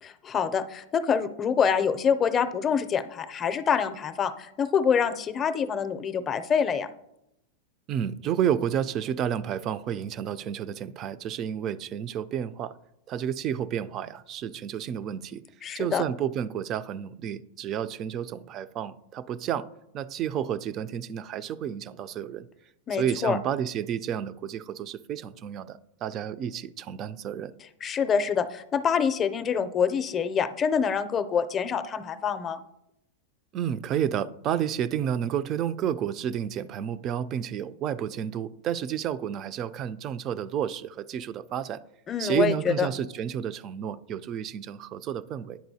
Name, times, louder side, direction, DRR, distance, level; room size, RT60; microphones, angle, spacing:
voice 1, 0.0-6.9 15.6-16.0 22.9-23.4 27.8-32.6 42.1-42.9, left 7 dB, 25° left, 0.5 m, -26 dB
voice 2, 7.9-12.8 13.1-15.4 15.7-19.7 19.9-22.5 22.9-27.5 33.5-41.8 42.2-45.6, right 9 dB, 35° right, 0.3 m, -31 dB
10.5 x 4.3 x 2.7 m
hypercardioid pair, 120°, 0 cm